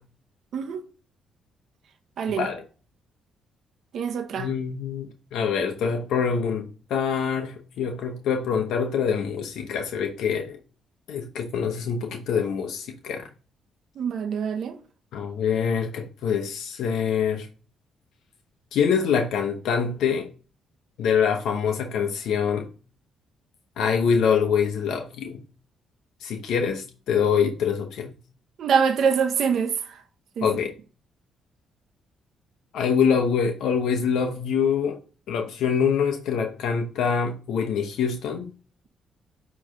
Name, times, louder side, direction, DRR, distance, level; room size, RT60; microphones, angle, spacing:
voice 1, 2.3-2.6 4.4-10.6 11.1-13.3 15.1-17.5 18.7-20.3 21.0-22.7 23.8-25.4 26.2-28.2 30.4-30.7 32.7-35.0 35.3-38.5, left 6 dB, 80° left, 1.0 m, -25 dB
voice 2, 3.9-4.5 14.0-14.8 28.6-30.0 30.4-30.5, right 6 dB, 65° right, 0.8 m, -24 dB
9.5 x 3.2 x 3.8 m
cardioid pair, 90°, 0 cm